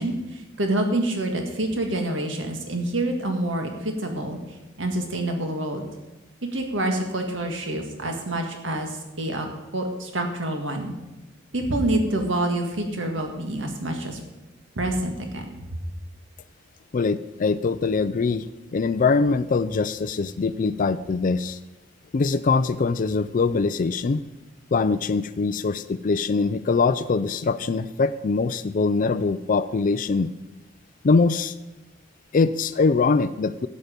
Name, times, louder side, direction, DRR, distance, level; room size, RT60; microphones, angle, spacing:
voice 1, 0.0-5.8 6.4-9.5 9.7-10.9 11.5-14.2 14.7-15.7, right 1 dB, 90° right, 4 dB, 1.8 m, -27 dB
voice 2, 16.9-18.5 18.7-21.6 22.1-24.2 24.7-30.3 31.0-31.5 32.3-33.7, left 4 dB, 45° left, 13 dB, 0.4 m, -23 dB
12.5 x 9.4 x 5.2 m, 1.1 s
head